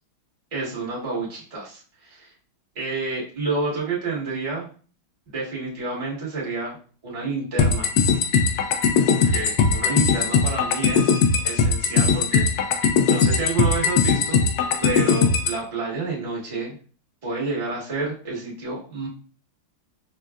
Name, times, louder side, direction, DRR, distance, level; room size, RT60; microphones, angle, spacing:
voice 1, 0.5-2.3 2.7-4.7 5.3-6.8 7.0-7.9 9.0-11.1 11.4-12.5 13.1-14.4 14.8-16.7 17.2-19.1, right 3 dB, 20° right, -5 dB, 1.0 m, -29 dB
sound 1, 7.6-15.6, left 5 dB, 80° left, 0.8 m, -20 dB
5.1 x 2.2 x 2.3 m, 0.40 s
omnidirectional pair, 2.2 m